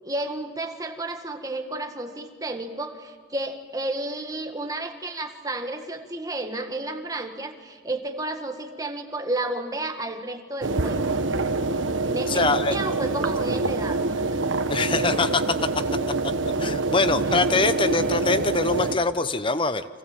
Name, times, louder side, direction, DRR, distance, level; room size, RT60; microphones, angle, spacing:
voice 1, 0.0-11.0 12.1-14.4, right 2 dB, 20° right, 5 dB, 1.8 m, -32 dB
sound 1, 10.6-19.0, right 3 dB, 85° right, 1.4 m, -26 dB
voice 2, 12.2-12.8 14.7-15.8 16.6-19.9, left 3 dB, 25° left, 12 dB, 0.9 m, -23 dB
30.0 x 25.5 x 7.4 m, 1.5 s
head